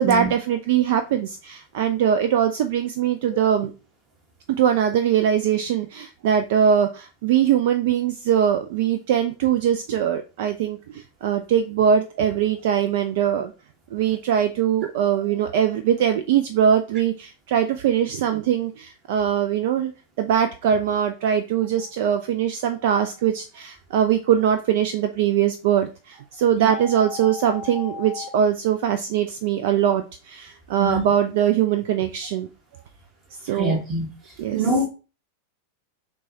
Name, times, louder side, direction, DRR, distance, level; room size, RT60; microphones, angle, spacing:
voice 1, 0.0-3.7 4.5-13.5 13.9-19.9 20.2-32.5 33.4-33.8 34.4-34.6, right 9 dB, 50° right, 0.3 m, -22 dB
sound 1, 26.7-28.3, left 7 dB, 5° right, 0.9 m, -36 dB
voice 2, 33.5-34.1 34.5-34.9, right 2 dB, 25° right, 1.2 m, -24 dB
6.0 x 2.2 x 2.8 m
figure-of-eight pair, 90°, 0 cm